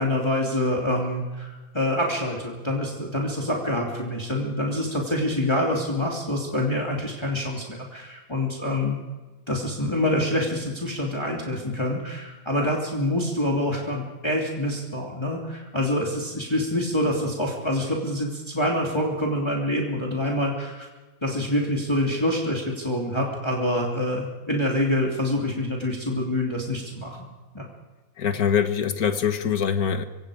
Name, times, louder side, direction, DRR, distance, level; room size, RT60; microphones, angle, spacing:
voice 1, 0.0-9.0 9.5-20.9 21.2-27.2 27.5-27.6, left 1 dB, 20° left, -2 dB, 2.8 m, -26 dB
voice 2, 28.2-30.0, left 7 dB, 90° left, 8 dB, 1.8 m, -23 dB
25.0 x 25.0 x 5.0 m, 1.3 s
omnidirectional pair, 1.5 m